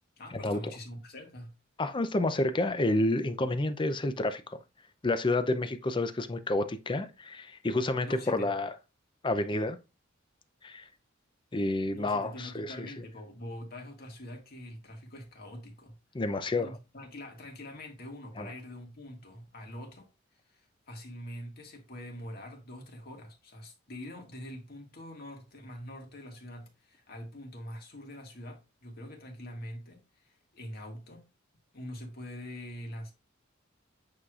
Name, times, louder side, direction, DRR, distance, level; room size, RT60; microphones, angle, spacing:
voice 1, 0.2-1.5 8.0-8.5 11.9-16.0 16.6-20.1 20.5-31.3 31.7-33.1, left 1 dB, 50° left, 1.9 m, -44 dB
voice 2, 1.8-4.4 5.0-8.7 9.2-9.8 10.6-10.9 11.5-12.9 16.1-16.7 18.4-18.5, left 2 dB, 25° left, 0.6 m, -29 dB
8.4 x 4.9 x 2.4 m
head